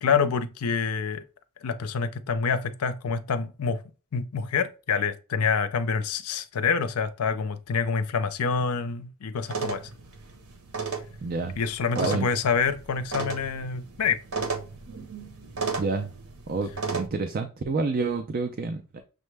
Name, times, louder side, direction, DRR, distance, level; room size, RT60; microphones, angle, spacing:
voice 1, 0.0-1.2 1.6-3.8 4.1-9.9 11.6-14.2, left 5 dB, 80° left, 0.5 m, -27 dB
sound 1, 9.5-17.1, right 4 dB, 80° right, 1.0 m, -35 dB
voice 2, 11.2-11.6 12.0-12.3 15.8-16.1 16.5-19.0, right 3 dB, 40° right, 0.4 m, -28 dB
6.3 x 2.1 x 3.3 m
head